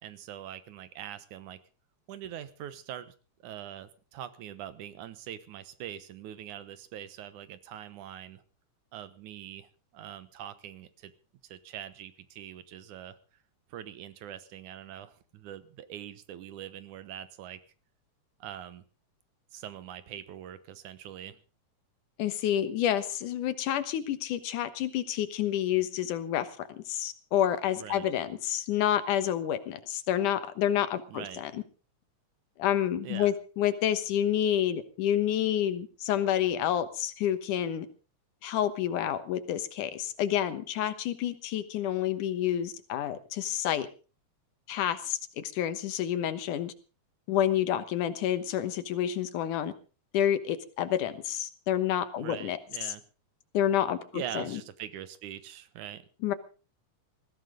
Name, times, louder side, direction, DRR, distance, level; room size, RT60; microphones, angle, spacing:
voice 1, 0.0-1.6 2.1-3.1 3.4-8.4 8.9-11.1 11.4-13.2 13.7-17.6 18.4-18.8 19.5-21.4 27.8-28.1 31.1-31.4 33.0-33.3 52.2-53.0 54.1-56.1, right 10 dB, 80° right, 13 dB, 2.6 m, -43 dB
voice 2, 22.2-31.5 32.6-37.9 38.4-43.9 44.7-46.7 47.3-49.7 50.1-52.6 53.5-54.6 56.2-56.3, left 10 dB, 90° left, 11 dB, 2.8 m, -29 dB
20.0 x 15.0 x 3.8 m, 0.35 s
omnidirectional pair, 3.5 m